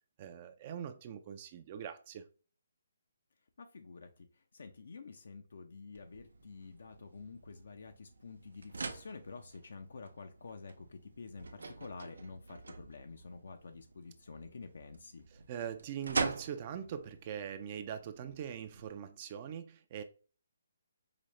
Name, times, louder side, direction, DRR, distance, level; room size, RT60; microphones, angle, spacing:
voice 1, 0.2-2.2 15.3-20.0, right 8 dB, 35° right, 0.3 m, -42 dB
voice 2, 3.6-15.3, left 4 dB, 75° left, 0.5 m, -49 dB
sound 1, 5.9-18.9, right 3 dB, 85° right, 0.6 m, -44 dB
4.9 x 2.1 x 3.0 m
hypercardioid pair, 160°, 0 cm